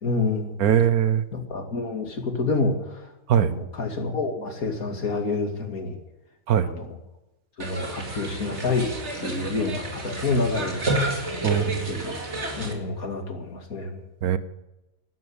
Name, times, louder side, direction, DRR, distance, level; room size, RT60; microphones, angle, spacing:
voice 1, 0.0-0.6 1.3-3.1 3.4-6.0 6.6-7.0 7.6-8.9 9.2-10.9 11.5-12.1 12.6-14.0, left 3 dB, 70° left, 4 dB, 2.8 m, -28 dB
voice 2, 0.6-1.2 3.3-3.5 6.5-6.7 11.4-12.0 14.2-14.4, right 9 dB, 80° right, 14 dB, 1.4 m, -21 dB
sound 1, 7.6-12.7, right 1 dB, 50° right, 2.7 m, -30 dB
12.0 x 12.0 x 8.1 m, 0.96 s
omnidirectional pair, 1.5 m